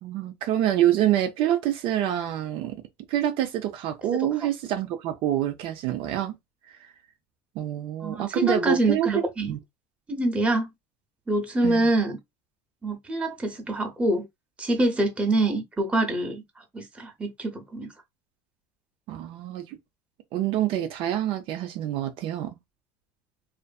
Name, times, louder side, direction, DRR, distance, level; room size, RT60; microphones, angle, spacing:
voice 1, 0.0-2.8 3.1-6.3 6.7-6.9 7.6-9.6 11.6-11.8 19.1-19.8 20.3-22.6, right 12 dB, 60° right, 0.5 m, -26 dB
voice 2, 8.0-9.5 10.1-10.7 11.3-12.2 12.8-14.2 14.6-16.4 16.7-17.9, right 1 dB, 10° right, 0.7 m, -25 dB
2.5 x 2.5 x 2.2 m
supercardioid pair, 120°, 10 cm